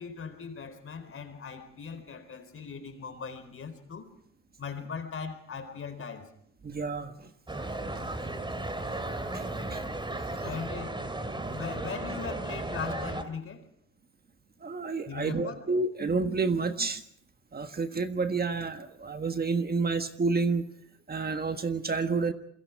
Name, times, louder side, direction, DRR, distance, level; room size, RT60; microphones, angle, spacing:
voice 1, 0.0-4.1 4.6-6.3 10.4-11.0 11.5-13.7 15.0-15.7, left 5 dB, 45° left, 8 dB, 4.2 m, -39 dB
voice 2, 6.6-7.3 7.9-8.0 8.9-9.0 9.3-9.8 10.4-10.5 11.4-11.5 14.6-17.0 17.5-20.7 21.1-22.3, right 4 dB, 30° right, 8 dB, 1.5 m, -30 dB
sound 1, 7.5-13.2, right 2 dB, 15° right, 2.6 m, -35 dB
27.5 x 23.0 x 4.8 m, 0.68 s
cardioid pair, 90°, 30 cm